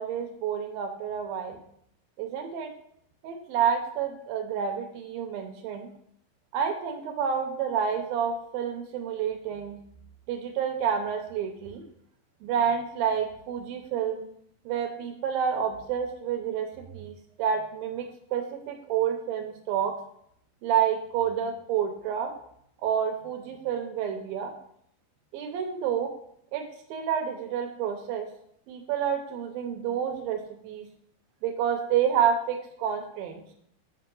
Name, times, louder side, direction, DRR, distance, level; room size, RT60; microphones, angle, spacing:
voice 1, 0.0-1.6 2.2-2.7 3.2-5.9 6.5-9.8 10.3-11.8 12.4-14.2 14.7-16.7 16.9-19.9 20.6-22.3 22.8-24.5 25.3-26.1 26.5-26.7 26.9-28.3 28.7-30.9 31.4-33.4, right 8 dB, 80° right, 5 dB, 2.5 m, -29 dB
8.0 x 5.7 x 3.8 m, 0.69 s
omnidirectional pair, 4.4 m